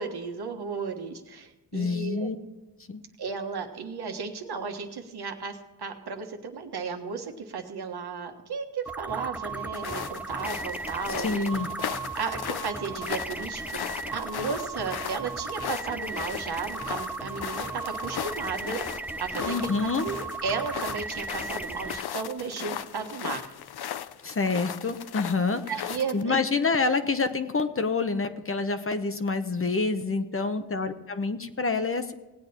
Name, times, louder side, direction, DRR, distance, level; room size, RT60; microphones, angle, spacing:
voice 1, 0.0-2.3 3.2-11.5 11.9-18.9 19.2-19.7 20.0-23.5 25.6-26.4, right 5 dB, 65° right, 4 dB, 1.4 m, -34 dB
voice 2, 1.7-2.4 2.9-3.0 11.2-11.7 19.5-20.0 24.2-25.6 26.1-32.1, left 4 dB, 30° left, 9 dB, 0.9 m, -27 dB
sound 1, 8.9-22.0, right 3 dB, 5° right, 0.3 m, -36 dB
sound 2, 9.7-26.2, left 10 dB, 65° left, 0.6 m, -37 dB
17.5 x 8.6 x 4.3 m, 1.1 s
cardioid pair, 75°, 41 cm